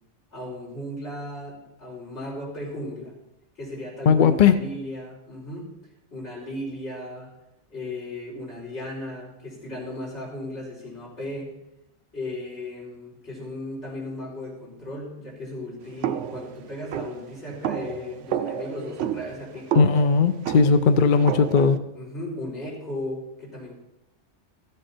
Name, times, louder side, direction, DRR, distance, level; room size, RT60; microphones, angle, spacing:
voice 1, 0.3-3.1 3.5-5.7 6.1-7.3 7.7-11.5 12.1-19.7 21.9-23.7, left 1 dB, 70° left, -5 dB, 5.0 m, -36 dB
voice 2, 4.1-4.5 19.7-21.8, left 5 dB, 55° left, 10 dB, 0.6 m, -18 dB
sound 1, 16.0-21.8, right 10 dB, 90° right, 0.9 m, -31 dB
14.5 x 7.8 x 4.4 m, 0.89 s
omnidirectional pair, 1.2 m